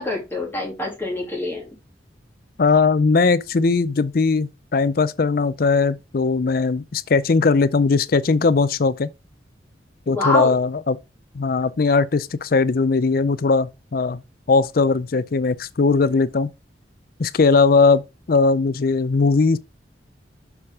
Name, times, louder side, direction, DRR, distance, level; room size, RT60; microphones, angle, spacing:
voice 1, 0.0-1.7 10.1-10.5, left 2 dB, 10° left, 2.8 m, -25 dB
voice 2, 2.6-9.1 10.1-11.0 11.3-14.2 14.5-16.5 17.2-18.0 18.3-19.6, left 4 dB, 50° left, 0.5 m, -19 dB
7.1 x 4.8 x 3.6 m
head